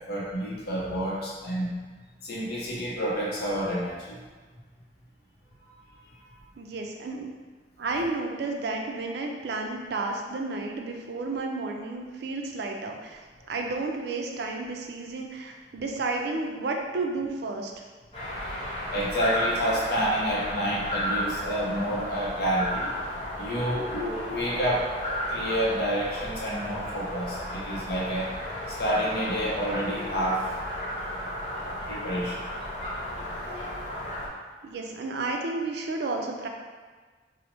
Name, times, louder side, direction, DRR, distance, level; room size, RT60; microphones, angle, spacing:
voice 1, 0.0-1.8 2.2-4.2 5.8-5.9 18.9-22.9 23.4-28.3 28.7-30.5 31.9-32.5 33.2-33.8, equal, 60° left, -5 dB, 0.5 m, -29 dB
voice 2, 6.6-7.3 7.8-13.2 13.5-17.7 34.6-36.5, right 3 dB, 65° right, 2 dB, 0.4 m, -32 dB
sound 1, 18.1-34.3, left 1 dB, 30° left, 0.9 m, -34 dB
2.9 x 2.0 x 4.0 m, 1.4 s
head